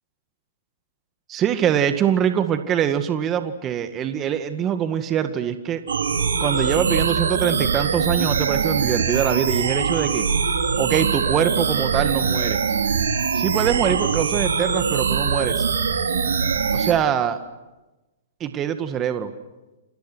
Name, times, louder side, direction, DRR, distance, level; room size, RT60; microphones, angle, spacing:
voice 1, 1.3-5.8 6.4-10.3 10.8-12.6 13.4-15.6 16.7-17.4 18.4-19.3, right 9 dB, 25° right, 8 dB, 2.0 m, -23 dB
sound 1, 5.9-16.9, right 6 dB, 85° right, 3.4 m, -22 dB
29.5 x 28.0 x 6.4 m, 1.1 s
hypercardioid pair, 125°, 0 cm